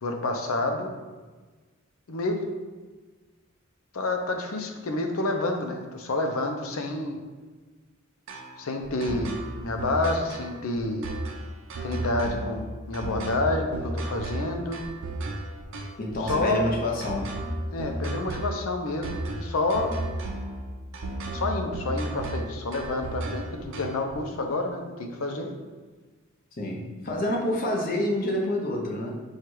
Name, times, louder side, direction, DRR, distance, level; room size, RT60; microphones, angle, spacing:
voice 1, 0.0-0.9 2.1-2.4 3.9-7.2 8.6-11.1 11.8-14.8 16.2-16.6 17.7-19.9 21.3-25.5, left 2 dB, 90° left, 4 dB, 0.6 m, -29 dB
sound 1, 8.3-24.1, right 1 dB, 75° right, 0.6 m, -34 dB
voice 2, 16.0-17.3 26.6-29.2, left 1 dB, 45° left, -2 dB, 0.8 m, -28 dB
4.5 x 2.4 x 4.6 m, 1.3 s
head